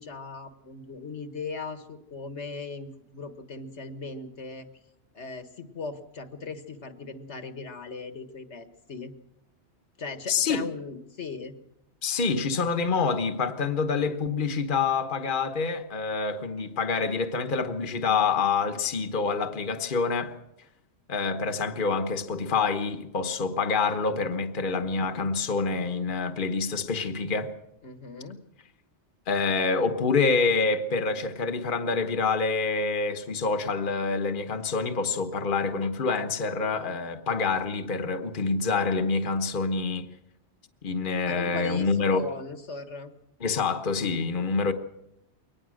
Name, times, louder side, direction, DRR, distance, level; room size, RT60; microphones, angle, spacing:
voice 1, 0.0-4.7 5.1-9.1 10.0-11.6 27.8-28.4 41.3-43.1, left 4 dB, 75° left, 1.9 m, -38 dB
voice 2, 10.3-10.7 12.0-20.3 21.1-27.5 29.3-40.1 40.8-42.2 43.4-44.7, left 4 dB, 45° left, 1.3 m, -27 dB
23.0 x 19.0 x 6.4 m
omnidirectional pair, 1.2 m